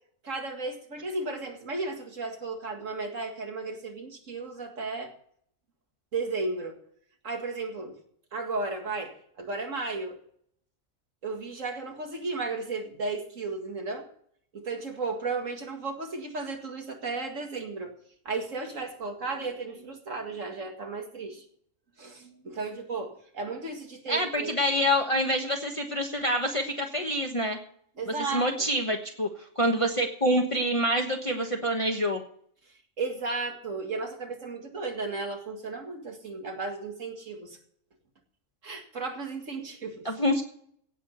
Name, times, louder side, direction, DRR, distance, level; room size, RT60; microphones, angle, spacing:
voice 1, 0.2-5.1 6.1-6.8 7.2-8.0 8.3-10.2 11.2-14.1 14.5-17.9 18.3-21.4 22.0-24.6 28.0-28.7 32.7-37.6 38.6-40.1, right 3 dB, 70° right, 2 dB, 2.3 m, -34 dB
voice 2, 24.1-27.6 28.3-29.3 29.6-32.2 40.0-40.4, equal, 25° left, 1 dB, 1.3 m, -26 dB
16.5 x 6.1 x 8.0 m, 0.62 s
omnidirectional pair, 1.4 m